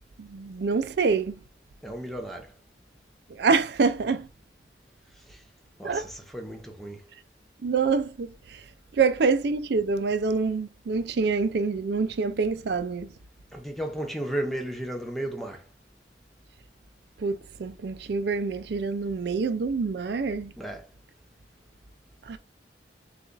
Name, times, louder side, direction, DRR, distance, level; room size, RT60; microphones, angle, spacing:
voice 1, 0.2-1.4 3.4-4.3 5.8-6.0 7.6-8.6 9.0-13.1 17.2-20.5 22.3-22.4, right 4 dB, 60° right, 0.4 m, -26 dB
voice 2, 1.8-2.5 5.3-5.4 5.8-7.0 13.5-15.6 20.6-20.9, right 1 dB, ahead, 0.7 m, -34 dB
6.8 x 2.4 x 2.5 m
head